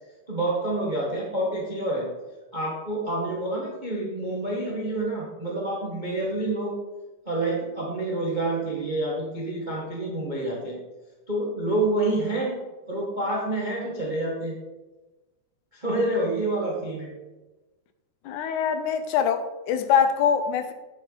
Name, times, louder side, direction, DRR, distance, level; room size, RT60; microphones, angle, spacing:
voice 1, 0.3-2.1 2.5-6.8 7.2-10.8 11.3-12.6 12.9-14.6 15.7-17.1, right 2 dB, 35° right, -3 dB, 0.7 m, -28 dB
voice 2, 18.3-20.7, left 7 dB, 80° left, 9 dB, 2.1 m, -23 dB
10.0 x 6.8 x 3.9 m, 1.1 s
omnidirectional pair, 3.4 m